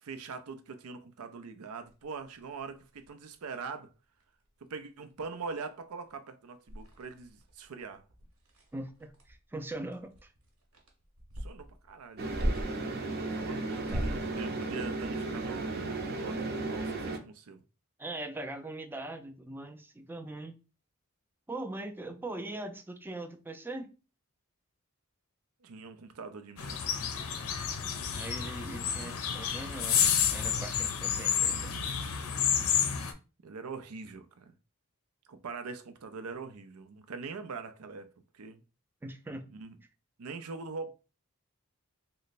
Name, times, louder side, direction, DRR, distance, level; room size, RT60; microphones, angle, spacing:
voice 1, 0.0-3.9 4.6-8.0 11.4-12.3 13.4-17.6 25.6-27.0 33.4-34.5 35.3-38.6 39.5-39.8 40.2-40.9, right 4 dB, 90° right, 0.5 m, -43 dB
sound 1, 1.9-3.3 3.9-4.0 4.2-4.5 4.8-4.9 5.2-5.7 6.1-6.2 6.7-12.9 13.7-14.3, equal, 70° right, 1.0 m, -38 dB
voice 2, 8.7-10.3 13.5-14.3 18.0-20.6 21.5-23.9 28.1-31.7 39.0-39.5, right 2 dB, 10° right, 0.3 m, -41 dB
sound 2, 12.2-17.2, right 2 dB, 45° right, 0.6 m, -35 dB
sound 3, 26.6-33.1, left 8 dB, 80° left, 0.5 m, -30 dB
3.1 x 2.1 x 4.0 m
head